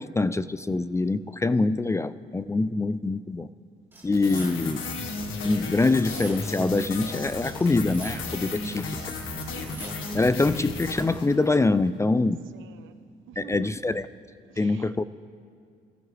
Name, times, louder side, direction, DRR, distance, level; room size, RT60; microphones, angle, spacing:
voice 1, 0.0-3.5 4.0-4.8 5.4-8.9 10.1-12.4 13.4-14.0 14.6-15.0, left 3 dB, 15° left, 15 dB, 0.3 m, -24 dB
sound 1, 3.9-4.9 5.7-6.7 7.6-8.5 9.3-10.3, right 2 dB, 10° right, 3.3 m, -45 dB
sound 2, 4.1-11.7, left 3 dB, 75° left, 1.6 m, -34 dB
voice 2, 12.5-13.0 13.3-13.8 14.5-15.0, right 9 dB, 80° right, 10 dB, 0.8 m, -46 dB
21.5 x 15.0 x 3.3 m, 2.2 s
cardioid pair, 90°, 20 cm